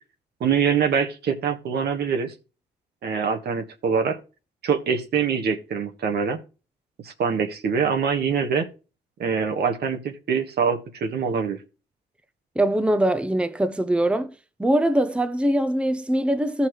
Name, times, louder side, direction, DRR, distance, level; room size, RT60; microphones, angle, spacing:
voice 1, 0.4-2.3 3.0-4.2 4.6-6.4 7.0-8.7 9.2-11.6, right 6 dB, 70° right, 1.5 m, -24 dB
voice 2, 12.6-14.3 14.6-16.7, right 1 dB, 5° right, 0.8 m, -22 dB
14.5 x 5.7 x 3.1 m
cardioid pair, 85°, 18 cm